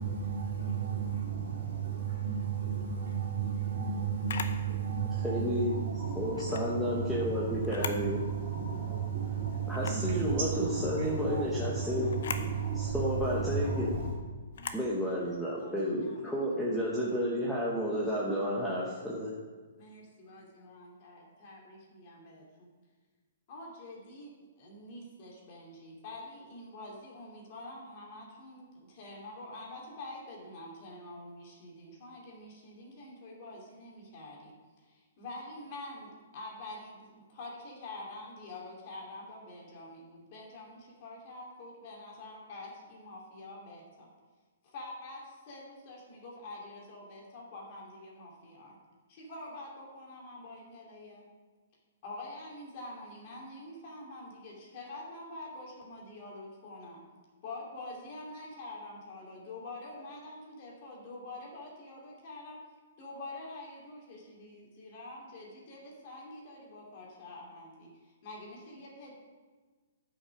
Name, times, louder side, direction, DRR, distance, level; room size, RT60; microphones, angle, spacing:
voice 1, 0.0-14.1, right 6 dB, 55° right, -3 dB, 3.1 m, -33 dB
Camera, 4.3-4.6 6.3-6.7 7.6-8.1 8.5-8.6 9.7-10.1 12.1-12.5 14.5-14.9, left 6 dB, 65° left, 0.8 m, -38 dB
voice 2, 5.2-5.7 6.2-8.2 9.7-12.1 12.8-13.9 14.7-19.3, equal, ahead, -6 dB, 1.1 m, -31 dB
voice 3, 11.3-13.0 13.3-14.2 14.5-17.3 19.8-22.7 23.5-44.1 44.6-48.8 49.1-51.2 52.0-57.0 57.4-62.6 63.0-69.1, left 2 dB, 40° left, -2 dB, 2.5 m, -47 dB
9.4 x 5.9 x 6.0 m, 1.4 s
hypercardioid pair, 160°, 0 cm